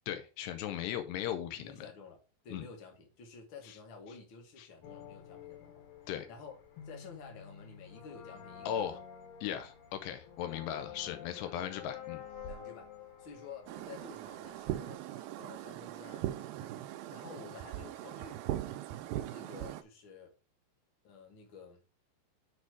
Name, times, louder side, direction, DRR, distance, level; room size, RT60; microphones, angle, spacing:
voice 1, 0.1-1.7 2.5-2.7 4.6-4.7 6.1-6.3 8.7-9.0 9.4-12.2, left 10 dB, 90° left, 2.9 m, -37 dB
voice 2, 1.6-5.8 6.3-6.6 6.8-9.0 10.4-10.6 11.3-11.6 12.5-12.9 13.2-15.0 15.4-16.8 17.1-18.4 19.3-20.3 21.0-21.8, left 5 dB, 45° left, 1.6 m, -51 dB
sound 1, 4.8-15.0, left 8 dB, 75° left, 3.6 m, -50 dB
sound 2, 13.7-19.8, right 13 dB, 80° right, 2.1 m, -40 dB
7.0 x 4.3 x 4.7 m
omnidirectional pair, 4.7 m